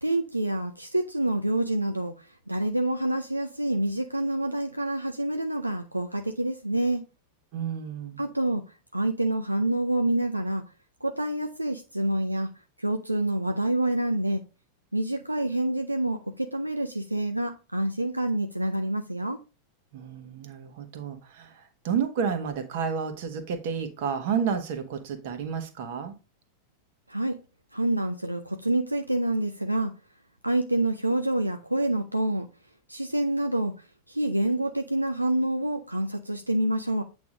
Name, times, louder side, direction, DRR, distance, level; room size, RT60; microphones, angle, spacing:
voice 1, 0.0-7.0 8.2-8.6 8.9-10.6 11.0-12.5 12.8-14.4 14.9-19.4 27.1-27.4 27.7-29.9 30.4-32.5 32.9-33.7 34.1-37.0, right 1 dB, 85° right, 0.5 m, -27 dB
voice 2, 7.5-8.2 19.9-26.1, right 7 dB, 50° right, 1.2 m, -31 dB
8.2 x 3.5 x 3.8 m
figure-of-eight pair, 90°, 0 cm